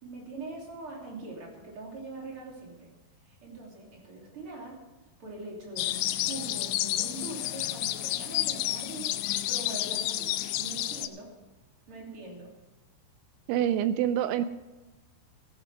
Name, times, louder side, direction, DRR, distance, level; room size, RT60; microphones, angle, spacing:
voice 1, 0.0-2.9 3.2-4.8 5.2-9.1 9.5-11.3 11.9-12.5, right 3 dB, 30° right, -2 dB, 3.2 m, -42 dB
sound 1, 5.8-11.1, left 15 dB, 85° left, 2.8 m, -30 dB
voice 2, 13.5-14.5, right 10 dB, 85° right, 11 dB, 2.7 m, -26 dB
15.0 x 11.0 x 4.9 m, 1.2 s
omnidirectional pair, 5.8 m